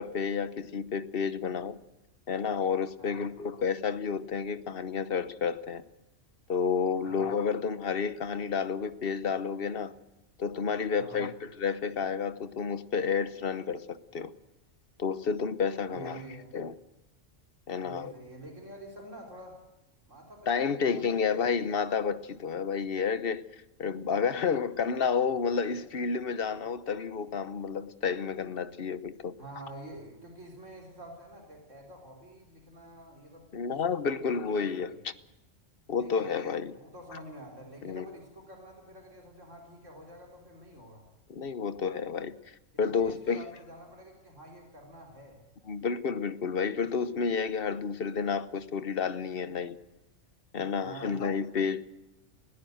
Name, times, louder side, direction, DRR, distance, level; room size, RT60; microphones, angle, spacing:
voice 1, 0.0-1.8 2.3-5.8 6.5-9.9 10.4-14.3 15.0-16.2 16.5-16.7 17.7-18.1 20.5-23.4 23.8-29.3 33.5-35.1 35.9-36.7 37.1-37.2 37.8-38.1 41.3-43.4 45.7-49.8 50.5-51.8, left 6 dB, 50° left, 1.2 m, -30 dB
voice 2, 3.0-3.3 7.0-7.3 10.9-11.3 15.9-16.5 17.8-19.6 20.1-21.6 29.4-35.0 36.0-36.3 36.7-41.1 42.9-45.4 50.8-51.3, right 1 dB, 80° right, 4.2 m, -48 dB
21.0 x 17.0 x 7.8 m
omnidirectional pair, 1.3 m